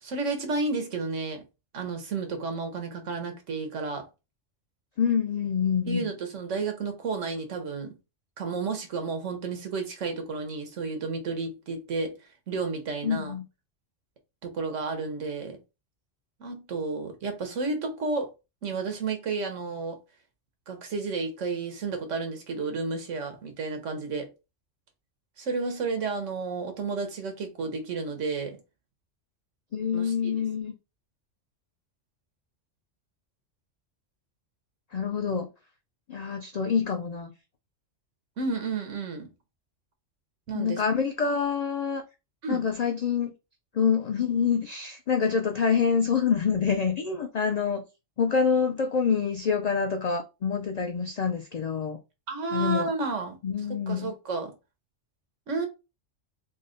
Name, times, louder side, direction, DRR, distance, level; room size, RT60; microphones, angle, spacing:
voice 1, 0.0-1.4 1.7-4.1 5.9-7.9 8.4-12.2 12.5-13.3 14.4-15.6 16.4-18.3 18.6-20.0 20.7-24.3 25.4-28.6 29.9-30.3 38.4-39.3 40.5-40.8 42.4-42.6 52.3-53.4 53.7-54.5 55.5-55.7, right 4 dB, 75° right, 1.3 m, -31 dB
voice 2, 5.0-6.1 13.0-13.4 29.7-30.7 34.9-35.5 36.1-37.3 40.5-42.0 42.5-43.3 43.7-47.8 48.2-52.0 52.5-52.9 53.4-54.1, left 6 dB, 90° left, 0.3 m, -26 dB
3.9 x 2.1 x 3.8 m
omnidirectional pair, 1.3 m